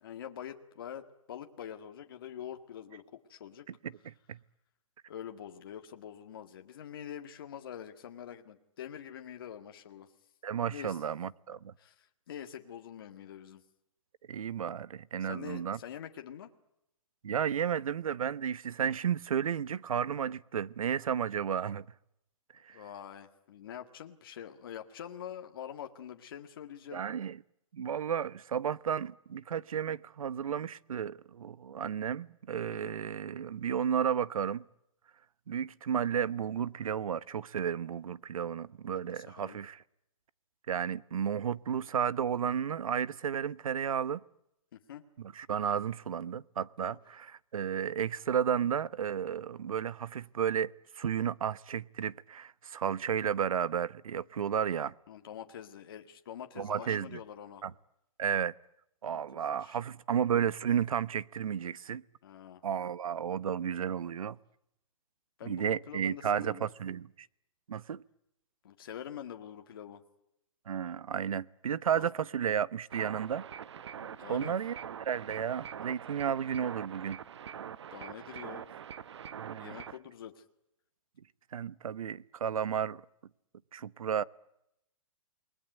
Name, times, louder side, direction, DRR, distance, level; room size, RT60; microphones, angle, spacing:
voice 1, 0.0-3.7 5.1-10.1 10.7-11.0 11.8-13.6 15.2-16.5 22.7-27.0 32.7-32.9 38.9-39.6 44.7-45.0 46.8-47.0 55.1-57.6 59.1-59.8 62.2-62.6 65.4-66.7 68.6-70.0 71.9-72.1 73.9-74.5 77.9-78.7 79.5-80.4, left 9 dB, 40° left, 1.9 m, -45 dB
voice 2, 3.8-4.4 10.4-11.7 14.3-15.8 17.2-21.9 22.6-22.8 26.9-27.4 27.7-34.6 35.5-39.8 40.7-44.2 45.3-54.9 56.6-57.2 57.6-57.7 58.2-58.5 59.0-62.0 62.6-64.4 65.4-67.3 67.7-68.0 70.7-73.4 74.3-74.7 75.0-77.2 79.4-79.8 81.5-83.0 83.7-84.2, right 8 dB, 80° right, 1.0 m, -33 dB
sound 1, 72.9-80.0, right 8 dB, 55° right, 1.0 m, -44 dB
29.0 x 20.5 x 9.2 m
hypercardioid pair, 180°, 17 cm